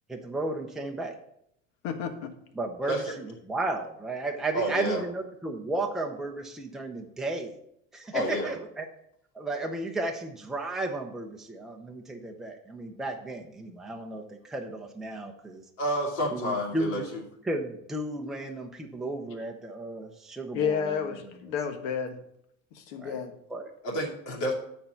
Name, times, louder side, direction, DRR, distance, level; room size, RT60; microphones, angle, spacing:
voice 1, 0.1-1.2 2.5-7.5 7.9-8.9 9.3-15.6 16.3-17.1 17.4-21.0 23.0-23.2 23.5-23.7, right 2 dB, ahead, 1 dB, 0.5 m, -34 dB
voice 2, 1.8-2.3 20.5-22.2 22.7-23.3, left 7 dB, 70° left, 7 dB, 1.4 m, -31 dB
voice 3, 4.5-5.0 8.1-8.5 15.8-17.2 23.8-24.5, equal, 55° left, -1 dB, 2.5 m, -29 dB
9.3 x 4.4 x 7.0 m, 0.74 s
cardioid pair, 170°, 35 cm